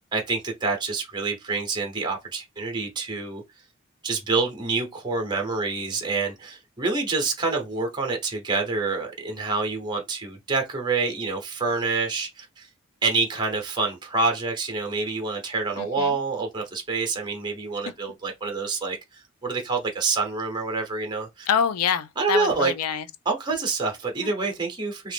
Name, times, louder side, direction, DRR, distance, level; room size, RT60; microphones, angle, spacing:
voice 1, 0.1-3.4 4.0-12.7 13.0-21.5 22.2-22.7 23.3-25.1, right 4 dB, 20° right, 0.7 m, -27 dB
voice 2, 15.8-16.2 21.5-23.0 24.2-24.3, left 7 dB, 90° left, 0.4 m, -26 dB
2.8 x 2.4 x 3.4 m
head